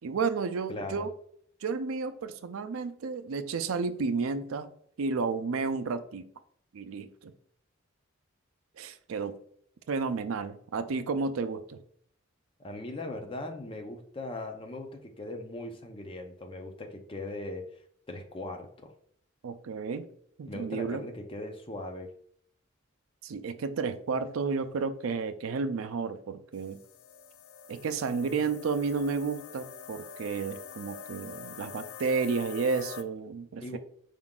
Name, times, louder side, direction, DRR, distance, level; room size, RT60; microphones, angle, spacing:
voice 1, 0.0-1.1 1.6-4.7 5.0-6.3 6.7-7.3 8.8-9.3 9.9-11.8 19.4-20.1 20.4-21.0 23.2-26.8 27.7-33.8, right 4 dB, 90° right, 0.4 m, -32 dB
voice 2, 0.7-1.1 12.6-17.7 18.1-18.9 20.5-22.1 33.6-33.8, left 2 dB, 25° left, 0.6 m, -39 dB
sound 1, 26.5-33.0, left 6 dB, 80° left, 0.3 m, -45 dB
4.9 x 3.7 x 2.3 m
head